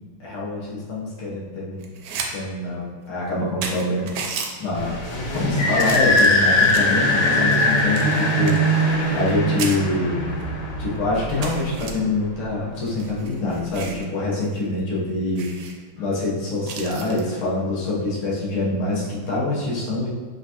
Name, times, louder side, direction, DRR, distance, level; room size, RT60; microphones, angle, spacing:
voice 1, 0.2-1.8 2.3-4.1 4.6-5.0 5.3-10.2 10.8-15.5 15.9-20.1, left 2 dB, 85° left, -6 dB, 1.9 m, -25 dB
sound 1, 1.8-2.3 2.7-2.8 3.3-3.4 3.6-4.5 5.2-5.5 5.8-7.0 7.5-9.3 9.6-9.8 10.4-10.5 10.8-10.9 11.4-11.9 12.8-14.1 14.4-14.6 14.9-15.0 15.4-15.7 16.7-17.2 18.9-19.2, right 5 dB, 75° right, 0.9 m, -33 dB
sound 2, 4.7-12.1, left 1 dB, 60° left, 1.0 m, -21 dB
5.7 x 2.5 x 2.8 m, 1.5 s
omnidirectional pair, 2.3 m